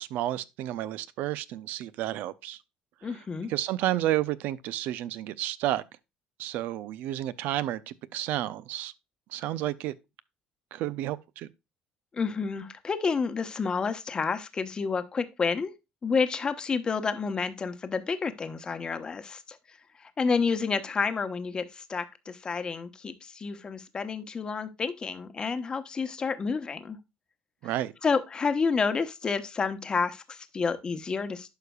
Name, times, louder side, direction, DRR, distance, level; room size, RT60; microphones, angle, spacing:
voice 1, 0.0-2.6 3.5-5.8 6.4-8.9 9.3-9.9 10.7-11.5 27.6-27.9, right 14 dB, 75° right, 0.5 m, -31 dB
voice 2, 3.0-3.5 12.1-15.7 16.0-19.6 20.0-27.0 28.0-31.5, left 5 dB, 30° left, 1.0 m, -29 dB
11.5 x 4.9 x 2.3 m
cardioid pair, 115°, 3 cm